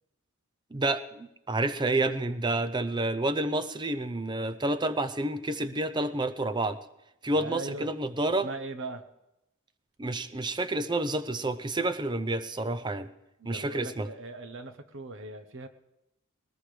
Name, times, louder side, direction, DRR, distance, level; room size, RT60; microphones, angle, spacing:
voice 1, 0.7-6.8 7.2-8.5 10.0-13.1 13.5-14.1, right 2 dB, 20° right, 11 dB, 0.7 m, -29 dB
voice 2, 7.3-7.9 8.4-9.1 13.4-15.7, right 2 dB, 60° right, 9 dB, 1.0 m, -39 dB
20.0 x 20.0 x 3.3 m, 0.90 s
head